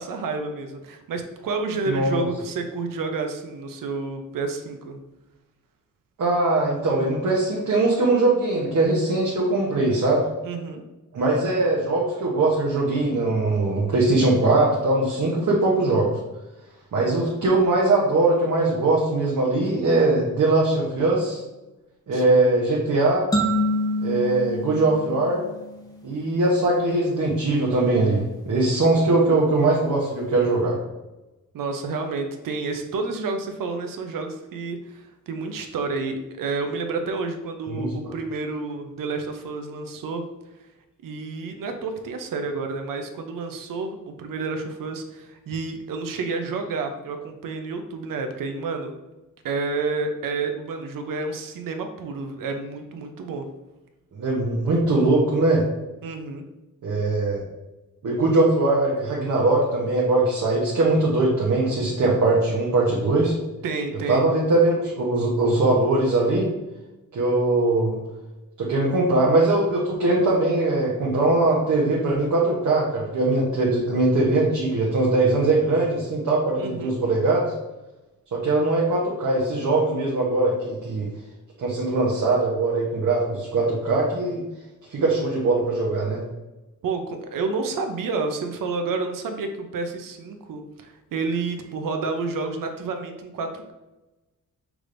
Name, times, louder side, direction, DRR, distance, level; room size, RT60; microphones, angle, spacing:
voice 1, 0.0-5.0 10.4-10.8 22.1-22.4 31.5-40.2 41.0-49.0 49.4-53.5 56.0-56.4 63.6-64.3 76.6-77.0 86.8-93.7, right 4 dB, 85° right, 6 dB, 0.6 m, -30 dB
voice 2, 1.9-2.3 6.2-10.2 11.1-16.2 16.9-21.4 22.1-23.3 24.0-25.4 26.0-30.7 37.7-37.9 54.1-55.6 56.8-57.4 58.0-63.3 64.1-66.5 67.1-68.0 68.6-77.5 78.3-81.1 81.6-84.4 84.9-86.2, right 2 dB, 60° right, -4 dB, 0.9 m, -21 dB
sound 1, 23.3-26.0, equal, 10° left, 0.8 m, -26 dB
6.0 x 3.3 x 2.5 m, 1.0 s
wide cardioid pair, 135°, 32 cm